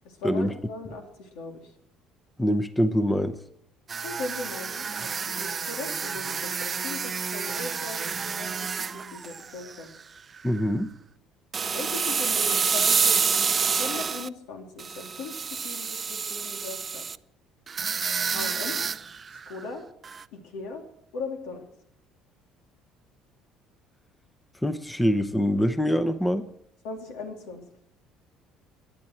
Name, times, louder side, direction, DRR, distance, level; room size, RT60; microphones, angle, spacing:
voice 1, 0.0-1.7 4.0-9.9 11.7-17.0 18.3-18.8 19.3-19.8 20.3-20.8 21.1-21.7 26.8-27.6, left 3 dB, 90° left, 3 dB, 3.1 m, -38 dB
voice 2, 2.4-3.4 10.4-10.9 24.6-26.4, equal, 5° left, 11 dB, 0.8 m, -24 dB
sound 1, 3.9-10.0 10.4-10.6 11.5-14.3 14.8-17.2 17.7-19.6 20.0-20.2, right 5 dB, 25° right, 0.4 m, -28 dB
19.0 x 11.0 x 4.6 m, 0.74 s
cardioid pair, 130°, 0 cm